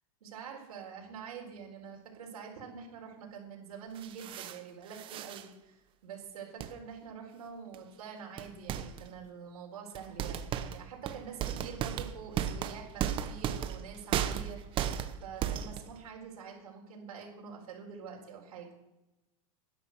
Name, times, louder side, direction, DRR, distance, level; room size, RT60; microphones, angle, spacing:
voice 1, 0.2-14.6 15.2-18.7, right 6 dB, 85° right, -2 dB, 4.3 m, -46 dB
sound 1, 3.9-4.6 4.9-5.5 6.6-6.7 7.7-7.8 8.4-9.1 9.9-16.0, right 10 dB, 25° right, 0.9 m, -35 dB
13.0 x 10.0 x 6.6 m, 0.99 s
supercardioid pair, 145°, 19 cm